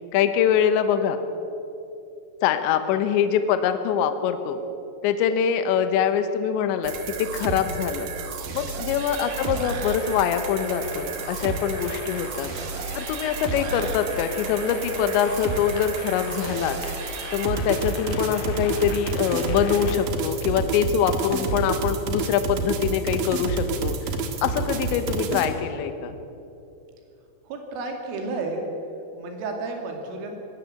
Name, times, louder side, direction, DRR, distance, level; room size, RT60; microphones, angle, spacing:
voice 1, 0.1-1.2 2.4-4.6 5.0-8.1 8.5-12.5 12.9-16.8 17.3-24.0 24.4-26.2, left 8 dB, 75° left, 9 dB, 3.2 m, -24 dB
sound 1, 6.8-25.5, right 4 dB, 60° right, 2.5 m, -30 dB
sound 2, 9.3-19.9, left 4 dB, 50° left, 2.9 m, -40 dB
voice 2, 27.5-28.7 29.1-30.4, right 3 dB, 80° right, 3 dB, 5.0 m, -32 dB
21.0 x 16.5 x 7.7 m, 2.8 s
omnidirectional pair, 5.6 m